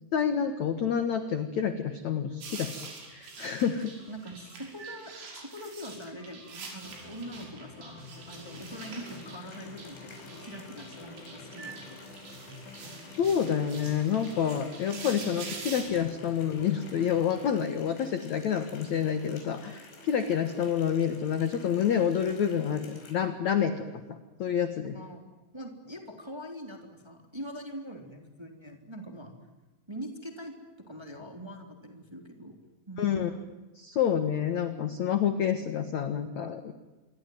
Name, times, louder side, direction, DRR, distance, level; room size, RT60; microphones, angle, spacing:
voice 1, 0.1-3.9 13.2-24.9 33.0-33.3 33.7-36.7, left 8 dB, 65° left, 9 dB, 1.8 m, -28 dB
sound 1, 2.4-15.8, right 4 dB, 90° right, 8.0 m, -45 dB
voice 2, 4.1-8.0 8.3-11.9 24.9-25.3 25.5-29.3 29.9-32.6 32.9-33.2, equal, 5° right, 4 dB, 2.5 m, -43 dB
sound 2, 6.8-17.5, left 3 dB, 45° left, 4.3 m, -49 dB
Water tap faucet, 8.6-23.1, left 3 dB, 85° left, 7.5 m, -51 dB
27.5 x 23.0 x 9.4 m, 1.1 s
omnidirectional pair, 5.5 m